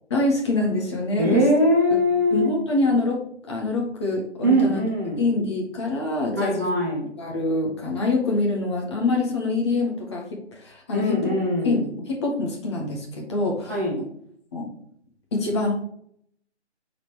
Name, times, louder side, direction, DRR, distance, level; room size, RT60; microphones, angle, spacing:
voice 1, 0.1-1.4 2.3-3.2 3.5-4.8 5.2-6.7 7.2-11.3 11.6-13.7 14.5-14.7 15.3-15.7, left 2 dB, 25° left, 0 dB, 1.5 m, -25 dB
voice 2, 1.2-2.5 4.4-5.3 6.3-7.1 10.9-11.8 13.6-14.0, equal, 15° right, -5 dB, 0.7 m, -21 dB
7.8 x 4.4 x 5.0 m, 0.67 s
figure-of-eight pair, 155°, 35 cm